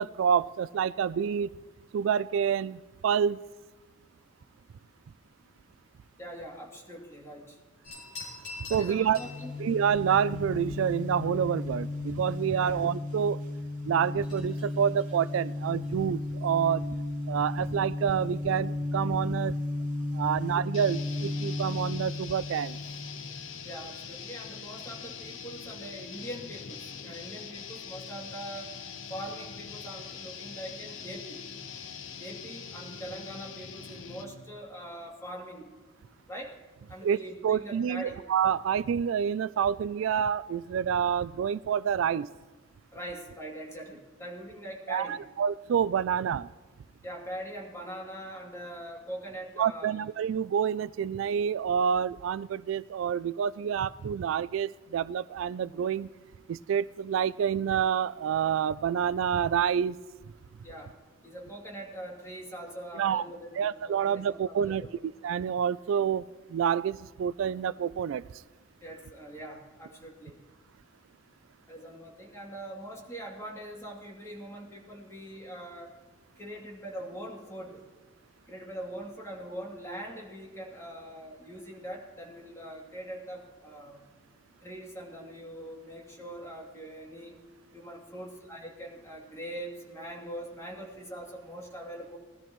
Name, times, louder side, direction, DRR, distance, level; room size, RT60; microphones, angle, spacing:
voice 1, 0.0-1.5 1.9-3.4 8.7-9.2 9.6-13.4 13.8-16.8 17.3-19.6 20.1-22.8 37.0-42.3 44.9-46.5 49.6-56.1 56.5-60.0 62.9-63.2 63.6-64.8 65.2-66.2 66.5-68.2, right 8 dB, 75° right, 18 dB, 0.3 m, -28 dB
voice 2, 6.2-7.6 8.7-9.6 12.5-12.8 23.6-28.8 29.1-31.4 32.2-35.7 36.3-36.6 36.9-38.2 42.9-45.2 47.0-50.0 60.6-60.9 61.2-64.9 68.8-70.4 71.7-76.0 76.4-77.8 78.5-84.1 84.6-87.4 87.7-92.2, right 1 dB, 15° left, -2 dB, 2.8 m, -42 dB
sound 1, 7.8-24.0, left 3 dB, 55° left, 5.5 m, -52 dB
sound 2, 9.0-23.5, left 2 dB, 40° right, 1.9 m, -34 dB
sound 3, 20.7-34.4, left 6 dB, 75° left, 0.8 m, -43 dB
20.0 x 13.5 x 3.1 m, 1.4 s
head